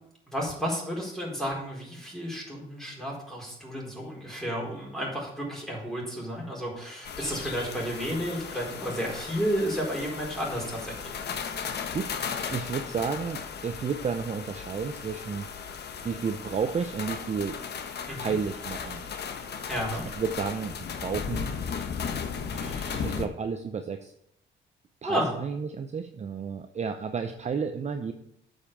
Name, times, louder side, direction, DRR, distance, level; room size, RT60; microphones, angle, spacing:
voice 1, 0.3-11.1 18.1-18.4 19.7-20.0 25.0-25.3, equal, ahead, -3 dB, 4.3 m, -32 dB
sound 1, 7.0-23.3, left 6 dB, 55° left, 1.1 m, -36 dB
voice 2, 12.5-15.5 16.0-17.6 18.2-19.0 20.2-21.8 22.5-24.1 25.0-28.1, right 6 dB, 35° right, 7 dB, 0.7 m, -32 dB
8.2 x 5.6 x 7.2 m, 0.75 s
cardioid pair, 90°, 20 cm